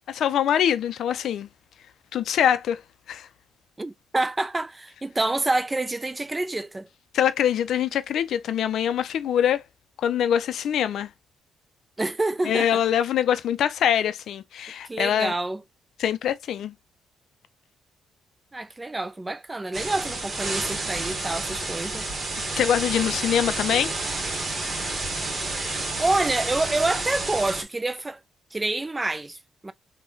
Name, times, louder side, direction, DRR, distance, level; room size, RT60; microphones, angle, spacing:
voice 1, 0.1-1.5 2.1-2.8 3.1-3.3 7.1-9.6 10.0-11.1 12.4-15.3 16.0-16.7 22.6-23.9, left 9 dB, 70° left, 0.4 m, -24 dB
voice 2, 3.8-6.9 12.0-12.8 14.8-15.6 18.5-22.0 26.0-28.2 28.5-29.7, right 2 dB, 15° right, 0.4 m, -27 dB
sound 1, 19.7-27.6, right 2 dB, 35° right, 1.1 m, -30 dB
3.0 x 2.2 x 3.8 m
cardioid pair, 90°, 0 cm